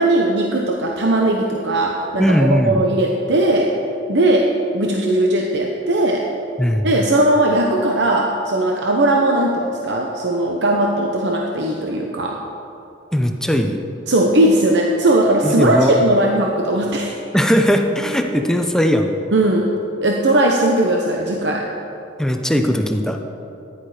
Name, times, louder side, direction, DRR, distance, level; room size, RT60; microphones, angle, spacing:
voice 1, 0.0-3.7 4.1-4.5 4.7-6.3 6.8-12.4 14.1-17.1 19.3-19.7 20.0-21.7, right 1 dB, 65° right, 0 dB, 1.0 m, -18 dB
voice 2, 2.2-2.8 6.6-6.9 13.1-13.8 15.4-15.9 17.3-19.2 22.2-23.2, equal, 5° left, 4 dB, 0.7 m, -18 dB
14.5 x 10.5 x 5.0 m, 2.8 s
head